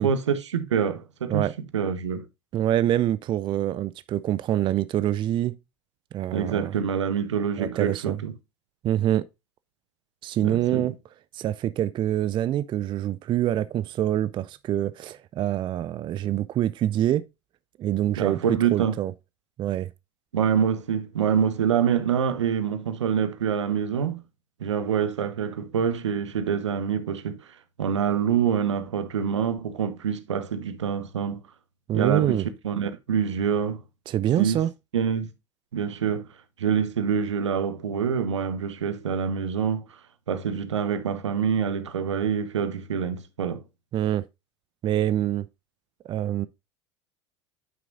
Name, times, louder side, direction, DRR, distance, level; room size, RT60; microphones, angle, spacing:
voice 1, 0.0-1.5 1.7-2.2 6.3-8.3 10.4-10.9 18.2-18.9 20.3-24.2 24.6-31.4 31.9-33.8 34.4-34.6 34.9-35.3 35.7-36.3 36.6-40.0 40.3-43.6, right 7 dB, 80° right, 0.9 m, -26 dB
voice 2, 2.5-5.5 6.1-6.7 7.6-8.2 8.8-9.2 10.2-10.9 11.3-17.2 17.8-18.4 18.7-19.1 19.6-19.9 31.9-32.5 34.1-34.7 43.9-44.2 44.8-45.5 46.1-46.5, right 12 dB, 35° right, 0.4 m, -25 dB
9.4 x 6.0 x 2.5 m
figure-of-eight pair, 75°, 15 cm